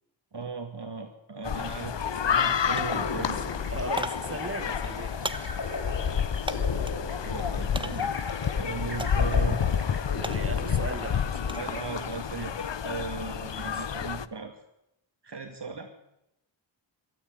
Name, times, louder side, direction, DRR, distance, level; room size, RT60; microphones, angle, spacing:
voice 1, 0.3-3.4 6.3-6.6 7.1-8.1 8.6-9.6 11.5-14.5 15.2-15.9, right 4 dB, 60° right, 3 dB, 2.7 m, -37 dB
sound 1, 1.4-14.3, left 7 dB, 70° left, 0.9 m, -29 dB
sound 2, 1.5-1.6 2.0-2.5 2.8-7.1 7.7-8.2 9.0-9.4 9.7-11.7 12.1-12.5, right 1 dB, 10° right, 1.2 m, -39 dB
sound 3, 2.0-12.4, left 2 dB, 50° left, 5.2 m, -38 dB
voice 2, 3.7-5.6 7.7-7.8 10.2-11.6 13.5-13.9, right 2 dB, 30° right, 10 dB, 1.8 m, -38 dB
22.0 x 13.5 x 10.0 m, 0.85 s
wide cardioid pair, 70°, 46 cm